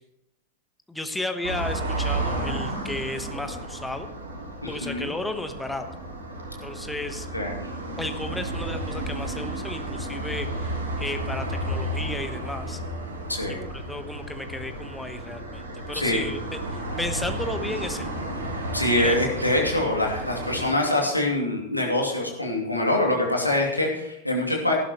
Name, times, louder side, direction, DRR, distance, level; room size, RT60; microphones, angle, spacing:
voice 1, 0.9-4.1 4.7-5.8 6.6-7.3 8.0-12.8 13.7-18.2 19.0-19.2, left 2 dB, 5° left, 7 dB, 1.2 m, -33 dB
sound 1, 1.4-20.7, right 1 dB, 70° right, 3.2 m, -32 dB
voice 2, 4.6-5.1 7.3-7.5 13.3-13.6 15.9-16.2 18.7-24.7, left 1 dB, 85° left, 0 dB, 2.5 m, -24 dB
18.0 x 11.5 x 3.1 m, 0.83 s
figure-of-eight pair, 90°, 0 cm